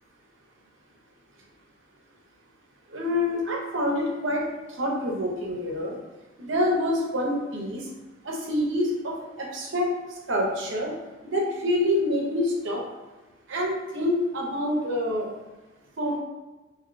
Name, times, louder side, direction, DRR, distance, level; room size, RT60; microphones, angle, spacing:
voice 1, 2.9-4.4 4.7-6.0 6.4-7.8 8.2-9.9 10.3-10.9 11.2-12.8 13.5-15.3 16.0-16.2, left 1 dB, 75° right, -2 dB, 0.7 m, -26 dB
3.0 x 2.8 x 2.5 m, 1.2 s
head